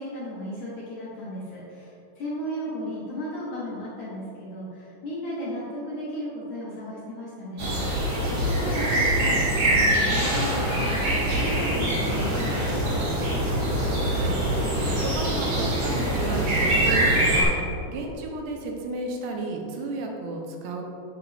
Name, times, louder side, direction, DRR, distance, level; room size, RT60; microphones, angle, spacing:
voice 1, 0.0-7.7 8.4-13.1, left 1 dB, 60° left, -7 dB, 2.2 m, -35 dB
sound 1, 7.6-17.4, right 1 dB, 45° right, 2.1 m, -24 dB
voice 2, 14.0-20.8, right 3 dB, 80° right, 2 dB, 3.1 m, -33 dB
8.9 x 8.2 x 3.5 m, 2.8 s
omnidirectional pair, 5.0 m